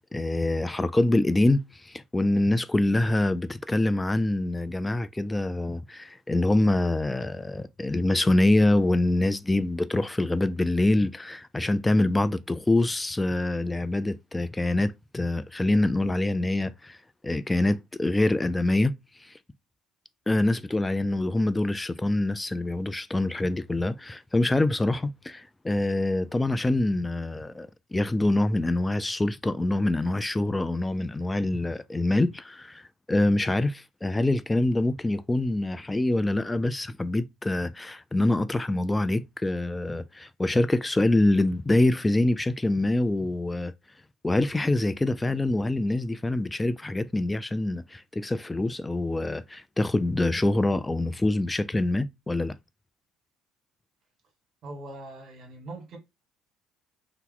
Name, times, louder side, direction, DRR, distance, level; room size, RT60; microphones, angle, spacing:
voice 1, 0.1-17.0 17.2-18.9 19.2-19.3 20.3-43.7 44.2-52.6, left 2 dB, 15° left, 0.4 m, -25 dB
voice 2, 54.6-56.0, right 2 dB, 50° right, 1.5 m, -41 dB
2.7 x 2.2 x 3.9 m
figure-of-eight pair, 55°, 0 cm